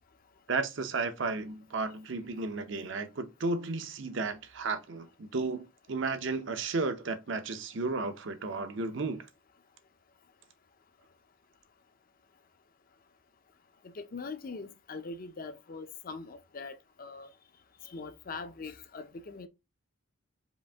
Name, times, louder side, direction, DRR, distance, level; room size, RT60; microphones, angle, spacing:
voice 1, 0.5-9.3, right 3 dB, 60° right, 0.6 m, -33 dB
voice 2, 13.9-17.3 17.8-19.5, left 4 dB, 40° left, 0.5 m, -42 dB
5.0 x 2.5 x 3.4 m
head